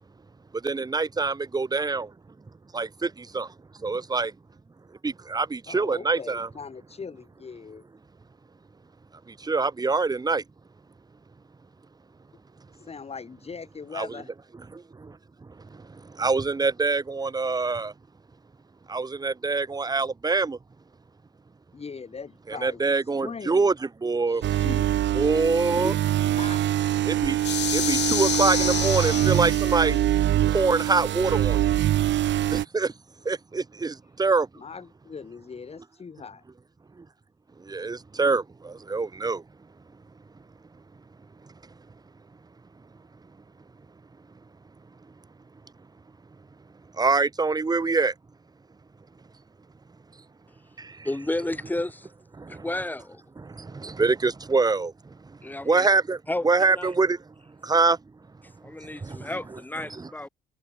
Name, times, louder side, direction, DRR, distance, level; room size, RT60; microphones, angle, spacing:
voice 1, 0.5-2.1 2.7-4.3 5.0-6.5 9.3-10.4 13.9-14.2 14.5-17.9 18.9-20.6 22.5-24.6 25.1-26.0 27.0-27.4 27.7-30.0 30.5-31.7 32.5-32.9 33.2-34.5 37.0-37.1 37.6-39.4 41.5-41.6 46.9-48.1 50.8-51.1 52.4-52.7 53.4-55.4 55.6-58.0 58.8-59.6 59.9-60.3, right 4 dB, 20° right, 0.9 m, -25 dB
voice 2, 5.7-7.8 12.8-14.3 21.7-22.8 23.2-23.7 24.3-24.9 26.4-26.6 34.6-36.4, left 5 dB, 30° left, 1.5 m, -40 dB
sound 1, 24.4-32.6, right 12 dB, 65° right, 0.8 m, -24 dB
sound 2, 27.4-30.0, left 11 dB, 60° left, 1.0 m, -28 dB
voice 3, 51.0-52.1 52.5-53.2 55.4-55.9 56.3-56.5 56.7-56.9 58.6-60.3, left 2 dB, 10° left, 1.0 m, -31 dB
cardioid pair, 90°, 20 cm